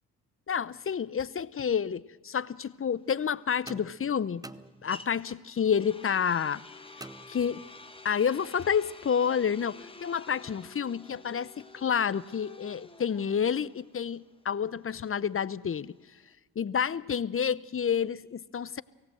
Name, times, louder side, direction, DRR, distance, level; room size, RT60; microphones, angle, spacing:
voice 1, 0.5-4.4 4.8-6.6 7.3-7.6 8.0-15.9 16.6-18.8, left 7 dB, 30° left, 0.7 m, -29 dB
sound 1, 2.5-16.3, left 3 dB, 15° left, 1.5 m, -50 dB
sound 2, 3.7-5.3 7.0-8.0, right 2 dB, 10° right, 0.9 m, -48 dB
24.5 x 16.5 x 7.8 m
hypercardioid pair, 45°, 42 cm